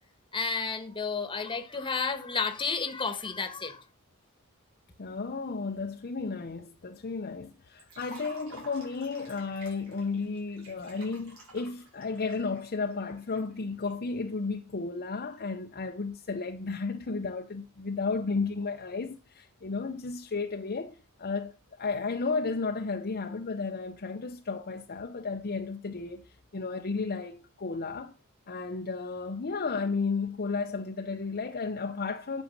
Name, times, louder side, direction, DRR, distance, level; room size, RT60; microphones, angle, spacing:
voice 1, 0.3-3.8, left 5 dB, 25° left, 1.3 m, -31 dB
voice 2, 5.0-21.5 21.8-26.2 26.5-28.1 28.5-32.4, left 4 dB, 45° left, 0.7 m, -33 dB
Liquid, 7.8-13.9, right 2 dB, 65° right, 5.0 m, -51 dB
8.8 x 6.3 x 5.4 m
head